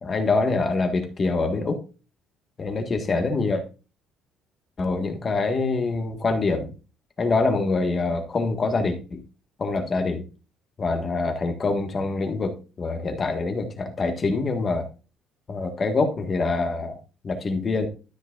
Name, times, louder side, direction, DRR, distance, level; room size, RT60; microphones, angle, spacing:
voice 1, 0.0-1.8 2.6-3.6 4.8-6.7 7.2-9.2 9.6-10.2 10.8-14.8 15.5-17.0 17.2-17.9, left 3 dB, 25° left, 5 dB, 1.6 m, -25 dB
13.0 x 6.0 x 2.5 m, 0.32 s
cardioid pair, 175°, 0 cm